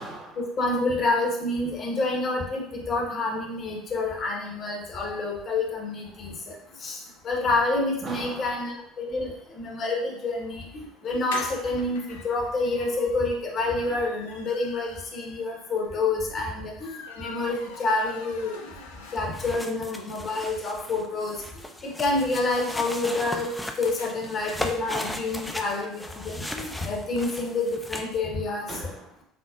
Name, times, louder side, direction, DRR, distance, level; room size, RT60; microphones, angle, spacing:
voice 1, 0.0-0.5 8.0-8.7 12.1-12.3 28.7-29.2, right 2 dB, 35° right, 0 dB, 0.7 m, -40 dB
voice 2, 0.6-6.5 6.8-18.7 19.1-21.4 21.8-23.5 23.8-28.7, left 2 dB, 40° left, -1 dB, 0.9 m, -28 dB
sound 1, 11.0-19.6 20.0-20.1 20.3-20.4 20.7-24.1, left 4 dB, 70° left, 0.4 m, -44 dB
sound 2, 19.1-28.2, left 1 dB, 5° left, 0.4 m, -37 dB
5.0 x 2.0 x 2.4 m, 0.71 s
figure-of-eight pair, 60°, 0 cm